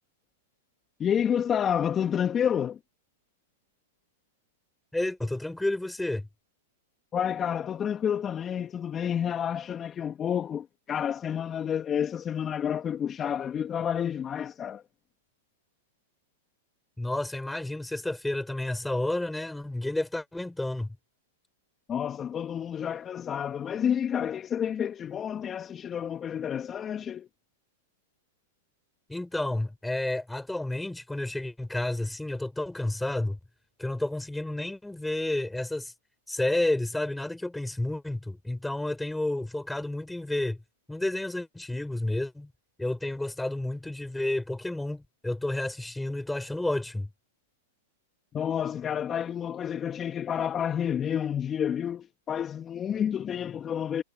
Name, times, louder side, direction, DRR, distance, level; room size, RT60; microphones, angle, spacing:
voice 1, 1.0-2.8 7.1-14.8 21.9-27.3 48.3-54.0, left 8 dB, 25° left, 2.8 m, -29 dB
voice 2, 4.9-6.3 17.0-21.0 29.1-33.4 33.8-35.9 36.3-40.6 40.9-42.5 42.8-47.1, left 1 dB, 5° left, 5.6 m, -31 dB
hypercardioid pair, 105°, 0 cm